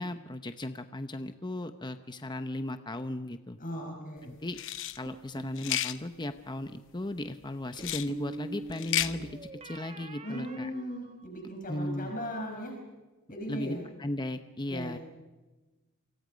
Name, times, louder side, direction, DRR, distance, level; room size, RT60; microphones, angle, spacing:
voice 1, 0.0-3.6 4.2-4.6 5.0-10.7 11.7-12.1 13.5-15.0, left 1 dB, 20° left, 9 dB, 0.9 m, -36 dB
voice 2, 3.6-4.4 10.2-12.7 13.3-13.8 14.7-15.0, equal, 40° left, 1 dB, 5.4 m, -38 dB
sound 1, 4.5-5.0 5.6-6.0 7.8-8.1 8.7-9.1, left 12 dB, 60° left, 0.9 m, -31 dB
sound 2, 5.1-5.9 7.8-11.5, right 2 dB, 30° right, 1.4 m, -45 dB
29.0 x 25.0 x 5.2 m, 1.1 s
head